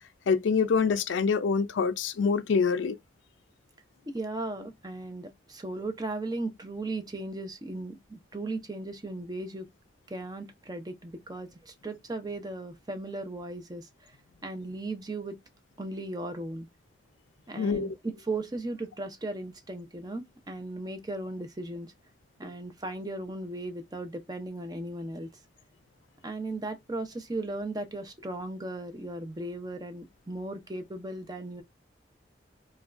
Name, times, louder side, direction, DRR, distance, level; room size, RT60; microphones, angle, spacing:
voice 1, 0.3-3.0 17.6-17.9, left 5 dB, 90° left, 0.4 m, -25 dB
voice 2, 4.1-9.7 10.1-14.1 14.4-15.4 15.8-16.7 17.5-21.9 22.4-25.3 26.2-31.6, right 2 dB, 20° right, 0.6 m, -37 dB
3.3 x 2.3 x 2.4 m
head